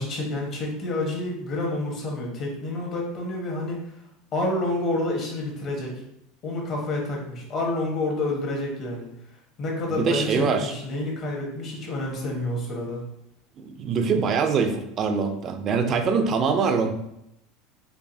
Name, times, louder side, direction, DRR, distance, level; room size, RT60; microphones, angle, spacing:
voice 1, 0.0-3.8 4.3-5.9 6.4-9.1 9.6-13.0, left 2 dB, 40° left, -1 dB, 1.1 m, -28 dB
voice 2, 9.9-10.7 13.6-16.9, right 5 dB, 35° right, 7 dB, 0.4 m, -24 dB
4.6 x 2.6 x 2.7 m, 0.79 s
supercardioid pair, 140°, 0 cm